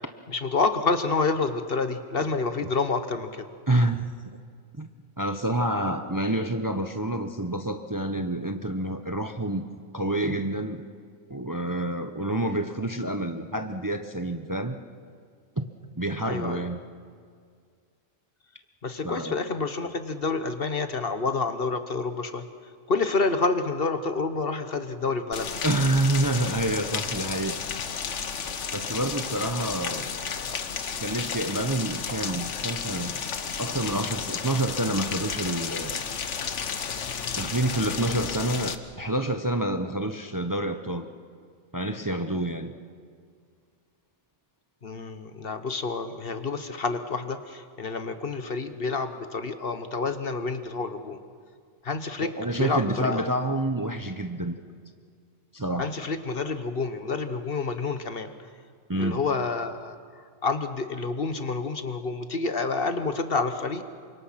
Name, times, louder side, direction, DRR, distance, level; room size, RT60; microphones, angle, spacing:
voice 1, 0.3-3.5 16.2-16.6 18.8-22.4 22.9-25.6 44.8-51.2 51.8-52.3 52.6-53.2 55.8-58.3 59.0-63.8, left 4 dB, 55° left, 9 dB, 1.4 m, -28 dB
voice 2, 3.7-4.1 4.8-4.9 5.2-9.7 9.9-10.8 11.3-14.8 15.6-15.7 16.0-16.8 19.0-19.3 25.6-27.6 28.7-30.1 31.0-33.2 33.6-36.0 37.4-41.1 41.7-42.7 52.2-54.5 55.5-55.9 58.9-59.2, right 1 dB, 20° right, 7 dB, 0.8 m, -28 dB
Rain, 25.3-38.8, left 6 dB, 75° left, 1.4 m, -32 dB
28.0 x 25.0 x 5.9 m, 2.1 s
omnidirectional pair, 1.2 m